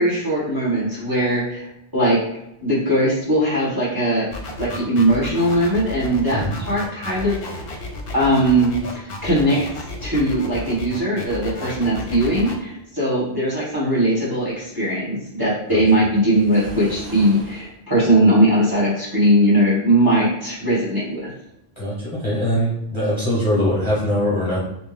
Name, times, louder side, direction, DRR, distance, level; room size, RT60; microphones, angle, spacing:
voice 1, 0.0-1.6 1.9-2.2 2.6-4.3 4.6-7.7 8.1-9.6 10.0-21.3, right 1 dB, 20° right, -8 dB, 1.5 m, -19 dB
sound 1, 4.3-12.5, left 2 dB, 65° left, 0.8 m, -33 dB
Waves surf, 16.2-17.7, right 1 dB, 70° right, 0.9 m, -38 dB
voice 2, 21.8-24.6, equal, 30° left, -8 dB, 1.0 m, -22 dB
3.3 x 2.8 x 3.3 m, 0.84 s
omnidirectional pair, 1.1 m